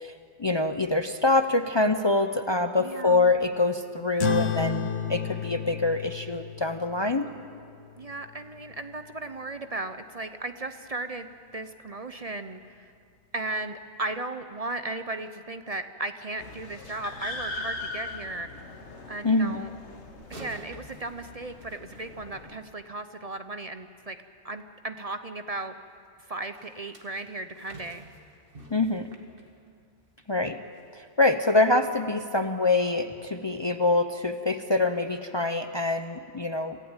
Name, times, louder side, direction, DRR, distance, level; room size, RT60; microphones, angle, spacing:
voice 1, 0.4-7.3 19.2-19.6 28.7-29.1 30.3-30.6 30.9-36.8, left 2 dB, 30° left, 8 dB, 0.6 m, -25 dB
voice 2, 2.8-3.3 8.0-12.9 13.3-18.5 19.1-19.7 20.4-24.2 24.4-25.7 26.3-28.1, right 2 dB, 40° right, 9 dB, 0.8 m, -36 dB
sound 1, 4.2-9.1, left 5 dB, 75° left, 1.4 m, -32 dB
sound 2, 16.4-22.6, left 3 dB, 90° left, 1.9 m, -40 dB
sound 3, 20.2-22.8 26.5-30.3 30.7-31.0 31.5-31.6, right 1 dB, 55° right, 2.3 m, -49 dB
27.0 x 15.5 x 8.9 m, 2.3 s
omnidirectional pair, 1.1 m